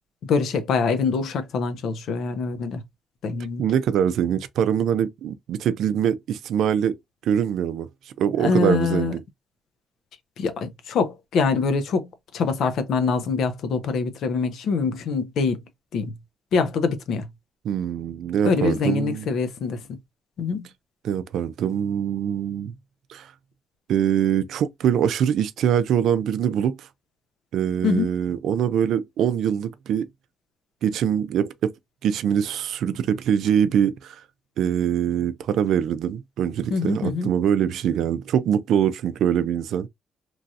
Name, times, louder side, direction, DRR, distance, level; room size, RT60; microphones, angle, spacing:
voice 1, 0.3-2.8 3.2-3.6 8.4-9.2 10.4-12.1 12.3-15.6 15.9-16.1 16.5-17.3 18.4-19.8 20.4-20.7 27.8-28.1 36.7-37.3, left 5 dB, 65° left, 0.6 m, -24 dB
voice 2, 3.6-7.0 7.2-7.9 8.2-9.2 17.6-19.3 21.0-22.7 23.1-23.3 23.9-26.9 27.5-30.1 30.8-31.7 32.0-34.2 34.6-39.9, right 9 dB, 70° right, 0.4 m, -23 dB
3.0 x 2.7 x 2.3 m
cardioid pair, 165°, 0 cm